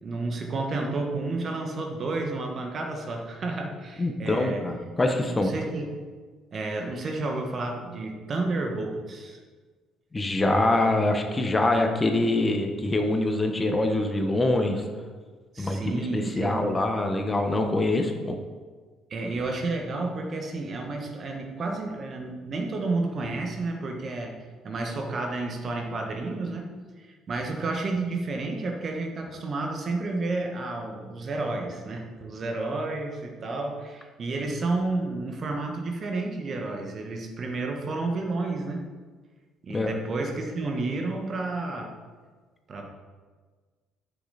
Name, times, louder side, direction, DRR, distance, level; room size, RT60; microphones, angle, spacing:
voice 1, 0.0-4.6 5.3-6.0 6.5-9.4 15.5-16.6 19.1-24.3 24.6-38.8 39.6-41.9 42.7-42.9, right 3 dB, 45° right, 2 dB, 1.6 m, -31 dB
voice 2, 4.0-5.5 10.1-14.8 15.6-18.4 39.7-39.9, left 2 dB, 25° left, 4 dB, 1.3 m, -24 dB
9.8 x 6.8 x 4.3 m, 1.4 s
hypercardioid pair, 55°, 0 cm